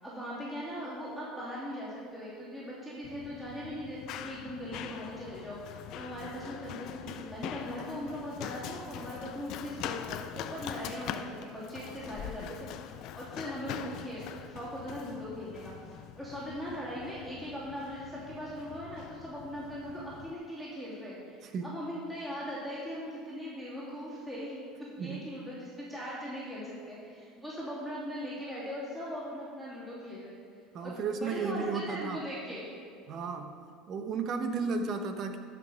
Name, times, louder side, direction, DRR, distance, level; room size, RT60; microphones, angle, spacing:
voice 1, 0.0-21.4 21.6-30.4 30.8-32.7, equal, 10° right, -9 dB, 3.0 m, -40 dB
Run, 3.0-20.3, left 10 dB, 60° left, 0.5 m, -43 dB
voice 2, 21.4-21.8 25.0-25.4 30.7-32.2 33.1-33.6 33.9-35.4, right 5 dB, 45° right, 7 dB, 1.0 m, -34 dB
12.0 x 6.1 x 5.1 m, 2.2 s
supercardioid pair, 125°, 0 cm